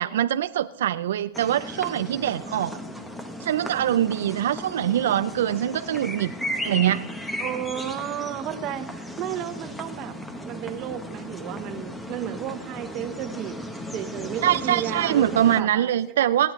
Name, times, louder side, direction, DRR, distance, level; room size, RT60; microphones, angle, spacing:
voice 1, 0.0-2.8 3.4-6.3 6.6-7.0 14.4-16.5, right 11 dB, 75° right, 11 dB, 0.4 m, -23 dB
Blackbird on campus, 1.3-15.6, equal, 5° left, 0.9 m, -35 dB
voice 2, 7.4-8.9 9.2-10.2 10.4-13.6 13.9-16.3, right 10 dB, 30° right, 9 dB, 0.9 m, -33 dB
26.5 x 9.1 x 3.1 m, 0.96 s
supercardioid pair, 155°, 0 cm